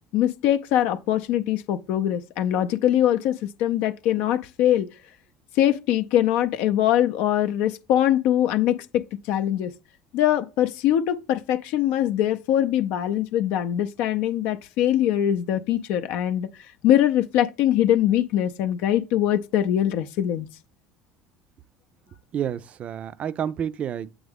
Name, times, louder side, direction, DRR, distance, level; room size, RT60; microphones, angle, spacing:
voice 1, 0.1-4.9 5.6-9.7 10.1-16.5 16.8-20.5, left 11 dB, 65° left, 0.4 m, -22 dB
voice 2, 22.3-24.1, right 9 dB, 45° right, 0.4 m, -29 dB
7.9 x 3.5 x 3.4 m
hypercardioid pair, 70°, 3 cm